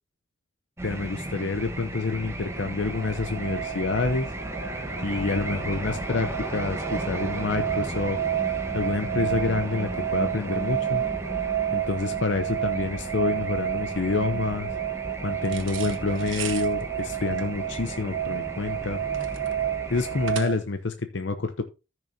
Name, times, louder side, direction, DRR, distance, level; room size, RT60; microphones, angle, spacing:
voice 1, 0.8-4.3 5.0-8.2 8.7-11.0 11.7-14.7 15.2-19.0 19.9-21.6, left 3 dB, 65° left, 8 dB, 0.7 m, -28 dB
sound 1, 0.8-20.3, right 1 dB, 15° right, 1.1 m, -35 dB
sound 2, 2.5-20.6, right 11 dB, 40° right, 1.1 m, -31 dB
sound 3, 15.5-20.9, right 8 dB, 80° right, 1.2 m, -40 dB
14.0 x 6.1 x 2.8 m, 0.29 s
head